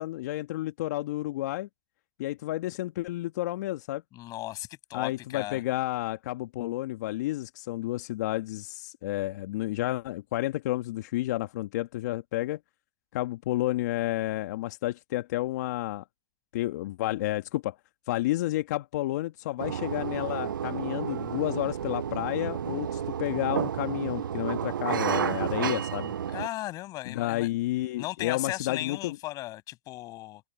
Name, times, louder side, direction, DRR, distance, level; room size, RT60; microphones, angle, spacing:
voice 1, 0.0-1.7 2.2-4.0 4.9-12.6 13.1-16.0 16.5-17.8 18.1-26.1 27.1-29.2, left 16 dB, 55° left, 1.8 m, -31 dB
voice 2, 4.1-5.6 26.3-27.5 28.0-30.4, left 17 dB, 35° left, 7.5 m, -36 dB
sound 1, 19.6-26.5, right 9 dB, 80° right, 0.7 m, -31 dB
hypercardioid pair, 120°, 11 cm